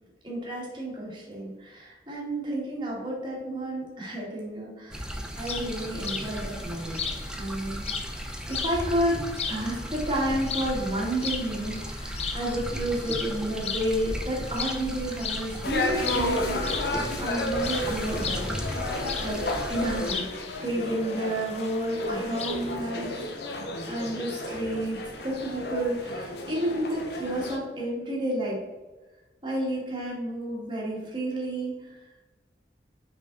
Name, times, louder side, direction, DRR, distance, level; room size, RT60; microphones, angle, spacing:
voice 1, 0.2-5.1 5.4-7.0 7.4-7.8 8.5-16.6 17.2-18.5 19.2-19.4 19.7-20.3 20.6-23.3 23.9-28.6 29.4-32.0, right 1 dB, 25° right, -4 dB, 1.9 m, -31 dB
sound 1, 4.9-20.1, equal, 5° right, 0.6 m, -36 dB
sound 2, 5.4-22.7, left 6 dB, 35° left, 0.6 m, -38 dB
sound 3, 15.6-27.6, left 1 dB, 65° left, 0.8 m, -32 dB
5.5 x 5.1 x 3.9 m, 1.2 s
head